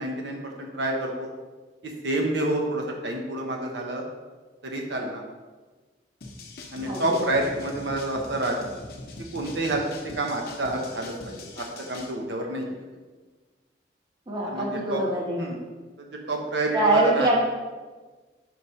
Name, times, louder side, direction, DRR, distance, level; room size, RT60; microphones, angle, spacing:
voice 1, 0.0-1.3 1.8-4.0 4.6-5.2 6.7-8.6 9.3-9.8 10.1-12.8 14.5-15.0 15.4-15.6 16.0-17.3, right 2 dB, 90° right, 1 dB, 0.9 m, -28 dB
sound 1, 6.2-12.1, left 2 dB, 55° left, 0.7 m, -42 dB
voice 2, 6.9-7.3 14.3-15.4 16.7-17.4, right 1 dB, 25° right, -3 dB, 1.1 m, -24 dB
4.7 x 4.2 x 5.4 m, 1.3 s
head